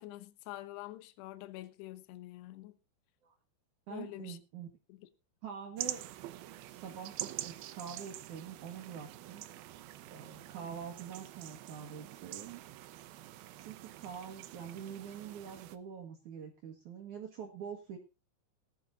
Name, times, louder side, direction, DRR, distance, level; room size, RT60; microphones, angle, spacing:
voice 1, 0.0-2.8 3.9-4.4 4.9-5.1, left 16 dB, 75° left, 3.0 m, -46 dB
voice 2, 3.9-4.7 5.4-6.1 6.6-9.4 10.1-12.6 13.5-18.0, right 7 dB, 55° right, 2.4 m, -45 dB
sound 1, 5.8-15.8, right 14 dB, 75° right, 2.2 m, -46 dB
19.0 x 11.0 x 2.6 m
omnidirectional pair, 5.1 m